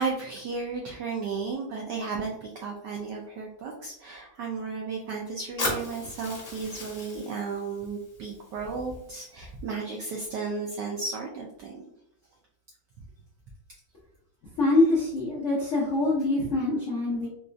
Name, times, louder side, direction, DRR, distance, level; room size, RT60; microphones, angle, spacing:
voice 1, 0.0-11.8, right 4 dB, 80° right, -1 dB, 0.9 m, -34 dB
Fire, 5.6-9.6, left 2 dB, 50° left, 0.9 m, -37 dB
voice 2, 14.6-17.3, left 2 dB, 75° left, -5 dB, 0.6 m, -24 dB
4.0 x 2.3 x 2.4 m, 0.75 s
omnidirectional pair, 2.4 m